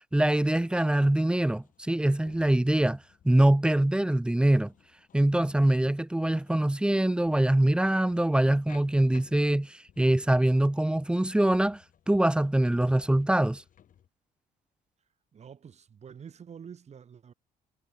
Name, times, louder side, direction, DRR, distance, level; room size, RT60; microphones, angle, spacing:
voice 1, 0.1-3.0 3.2-4.7 5.1-11.8 12.1-13.6, right 1 dB, 5° right, 0.7 m, -24 dB
sound 1, 1.4-14.1, left 9 dB, 50° left, 4.6 m, -59 dB
voice 2, 15.3-17.3, right 7 dB, 40° right, 5.8 m, -47 dB
cardioid pair, 110°, 17 cm